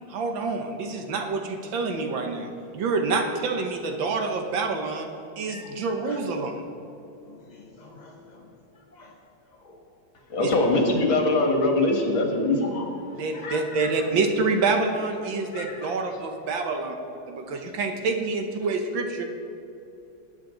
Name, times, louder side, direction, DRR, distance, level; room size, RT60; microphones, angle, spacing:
voice 1, 0.1-5.1 5.4-6.6 10.4-10.5 13.2-16.9 17.3-19.2, right 3 dB, 70° right, 5 dB, 1.7 m, -27 dB
voice 2, 7.2-8.5 8.9-9.1 9.6-9.8 10.3-10.4 12.6-12.8 13.1-14.1 15.5-15.9 16.4-17.0 17.3-17.4, left 3 dB, 35° left, 0 dB, 0.7 m, -41 dB
voice 3, 10.3-12.8, left 2 dB, 75° left, 1 dB, 2.6 m, -22 dB
19.5 x 9.2 x 3.9 m, 2.8 s
omnidirectional pair, 2.2 m